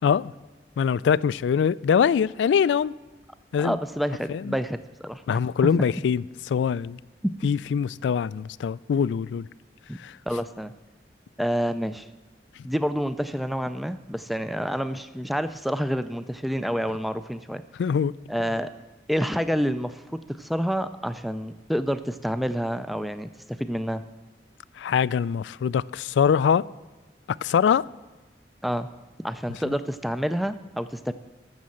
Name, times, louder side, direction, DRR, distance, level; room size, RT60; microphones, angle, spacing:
voice 1, 0.8-2.9 3.5-3.8 4.3-4.5 5.3-7.0 7.4-9.5 10.0-10.1 17.8-18.1 24.8-26.6 27.4-27.8, left 7 dB, 85° left, 0.3 m, -23 dB
voice 2, 3.6-5.4 7.2-7.3 9.9-10.0 10.3-10.7 11.4-12.1 12.6-17.6 18.3-18.7 19.1-24.0 28.6-28.9 29.2-31.1, equal, ahead, 0.3 m, -28 dB
14.0 x 6.4 x 7.1 m
head